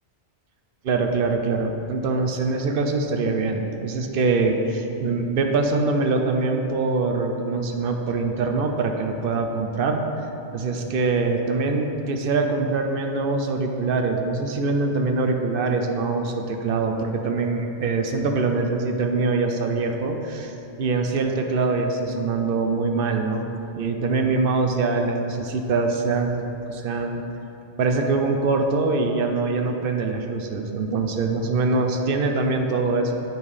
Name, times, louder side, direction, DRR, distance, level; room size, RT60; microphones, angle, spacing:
voice 1, 0.8-10.0 10.5-23.5 23.8-27.2 27.8-33.1, right 3 dB, 60° right, 4 dB, 0.7 m, -23 dB
7.8 x 5.2 x 3.2 m, 2.9 s
omnidirectional pair, 1.2 m